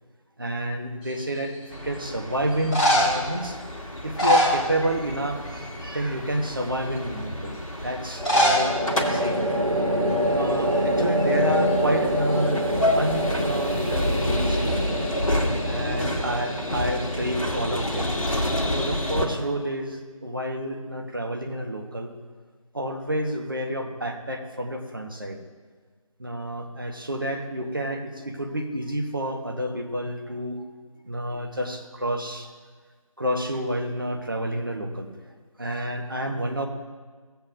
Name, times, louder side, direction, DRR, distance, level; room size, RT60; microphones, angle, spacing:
voice 1, 0.4-3.6 4.0-9.4 9.7-9.8 10.3-12.7 12.9-15.1 15.7-18.1 18.7-22.2 22.7-25.4 26.2-30.7 31.1-32.5 33.2-35.1 35.6-36.7, right 1 dB, 35° right, 3 dB, 0.8 m, -29 dB
sound 1, 1.1-1.6 2.5-3.3 4.0-5.2 5.5-5.8 6.4-6.5 8.1-8.7 9.0-9.1 9.3-9.4 10.1-10.3 10.6-11.8 15.8-16.4, equal, 10° left, 1.6 m, -24 dB
sound 2, 1.7-19.2, left 1 dB, 65° left, 1.6 m, -30 dB
sound 3, 5.0-5.6 8.2-19.5, equal, 65° right, 1.9 m, -27 dB
16.0 x 7.7 x 2.5 m, 1.5 s
figure-of-eight pair, 170°, 18 cm